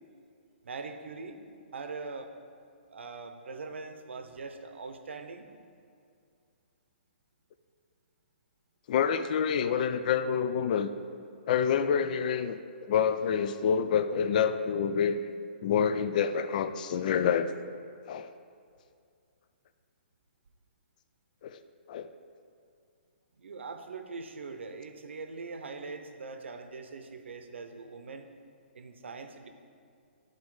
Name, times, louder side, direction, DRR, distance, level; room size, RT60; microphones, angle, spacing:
voice 1, 0.6-1.4 1.7-2.3 2.9-5.5 23.3-28.3 28.7-29.5, right 4 dB, 85° right, 7 dB, 0.8 m, -42 dB
voice 2, 8.9-10.9 11.5-12.6 12.9-15.2 15.6-17.5 18.1-18.3 21.4-21.6 21.9-22.1, left 7 dB, 45° left, 11 dB, 0.4 m, -27 dB
12.0 x 4.0 x 4.8 m, 2.3 s
hypercardioid pair, 155°, 6 cm